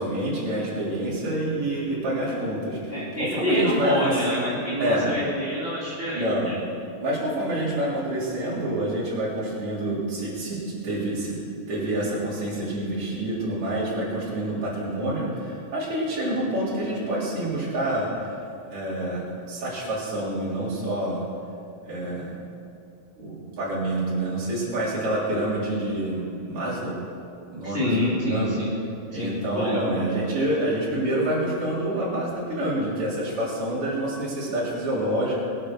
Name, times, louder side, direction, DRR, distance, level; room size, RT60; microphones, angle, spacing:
voice 1, 0.0-5.1 6.1-6.5 7.0-11.4 11.7-18.3 18.7-21.2 21.8-22.3 23.2-27.0 27.5-28.5 29.1-35.4, right 1 dB, 40° right, -7 dB, 4.5 m, -27 dB
voice 2, 2.9-6.6 27.6-28.8 29.2-30.0, left 1 dB, 20° left, -8 dB, 2.6 m, -27 dB
22.5 x 8.4 x 6.4 m, 2.6 s
omnidirectional pair, 3.8 m